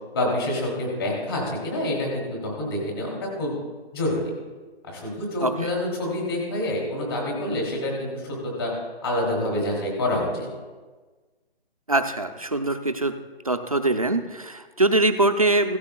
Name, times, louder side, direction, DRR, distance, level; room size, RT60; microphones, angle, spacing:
voice 1, 0.1-3.5 3.9-4.3 4.8-8.7 9.0-10.5, left 1 dB, 25° left, -2 dB, 2.8 m, -27 dB
voice 2, 11.9-13.2 13.5-15.8, right 2 dB, 35° right, 7 dB, 0.5 m, -23 dB
16.5 x 13.0 x 2.2 m, 1.3 s
hypercardioid pair, 175°, 31 cm